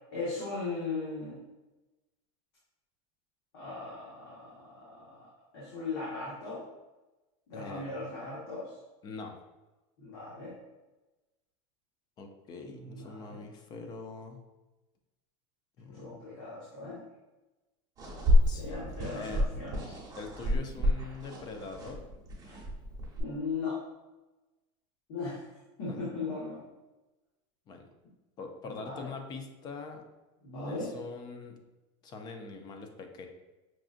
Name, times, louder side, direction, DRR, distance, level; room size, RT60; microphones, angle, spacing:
voice 1, 0.1-1.4 3.5-5.3 5.5-6.6 7.5-8.8 10.0-10.5 12.6-13.4 15.9-17.0 18.5-20.0 22.4-22.6 23.2-23.8 25.1-26.6 28.6-29.1 30.4-30.9, left 3 dB, 60° left, -8 dB, 1.3 m, -38 dB
voice 2, 7.5-7.9 9.0-9.3 12.2-14.4 15.8-16.2 18.5-18.9 19.1-19.4 20.2-22.0 25.9-26.1 27.7-27.9 28.4-30.0 30.7-31.6 32.0-33.3, left 4 dB, 25° left, 5 dB, 0.5 m, -43 dB
sound 1, 18.0-23.2, left 1 dB, 20° right, 1.2 m, -29 dB
5.9 x 2.5 x 2.5 m, 1.1 s
supercardioid pair, 155°, 16 cm